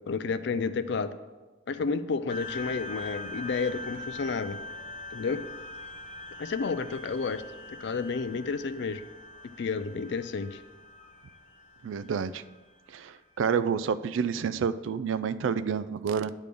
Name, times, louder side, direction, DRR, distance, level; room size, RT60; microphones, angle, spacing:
voice 1, 0.1-1.1 1.7-4.6 5.1-5.5 6.4-7.4 7.7-9.0 9.6-10.6, left 4 dB, 55° left, 12 dB, 0.4 m, -31 dB
sound 1, 2.3-13.2, left 2 dB, 35° left, 0.8 m, -43 dB
voice 2, 11.8-12.4 12.9-16.3, right 6 dB, 70° right, 15 dB, 0.3 m, -29 dB
9.2 x 3.5 x 6.7 m, 1.2 s
head